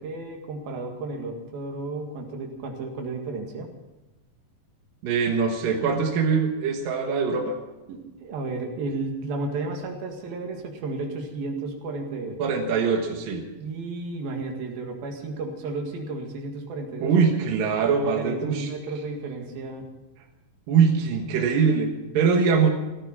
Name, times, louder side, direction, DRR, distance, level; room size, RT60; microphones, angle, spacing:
voice 1, 0.0-3.7 7.9-12.4 13.6-17.1 18.2-19.8, right 3 dB, 90° right, 2 dB, 3.9 m, -33 dB
voice 2, 5.0-7.6 12.4-13.4 17.0-18.7 20.7-22.7, right 5 dB, 75° right, 2 dB, 3.2 m, -22 dB
16.5 x 14.0 x 6.0 m, 1.1 s
omnidirectional pair, 4.1 m